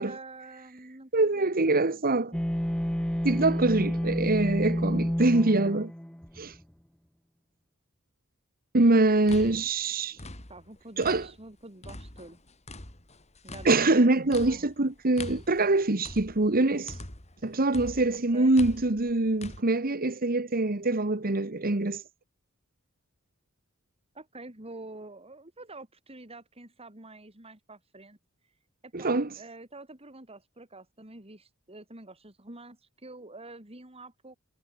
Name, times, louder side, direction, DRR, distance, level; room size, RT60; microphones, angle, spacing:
voice 1, 0.0-2.0 4.0-4.2 10.5-12.4 13.4-14.7 18.1-18.6 24.1-28.2 28.8-34.4, right 2 dB, 30° right, 4.4 m, -47 dB
voice 2, 1.1-2.4 3.2-5.9 6.4-6.5 8.7-10.2 11.0-11.3 13.6-16.9 17.4-22.0 28.9-29.3, right 2 dB, 45° right, 1.5 m, -24 dB
sound 1, 2.3-6.6, equal, 5° left, 0.8 m, -29 dB
sound 2, 9.1-11.5 11.8-17.4 17.7-19.6, left 2 dB, 30° left, 3.6 m, -43 dB
head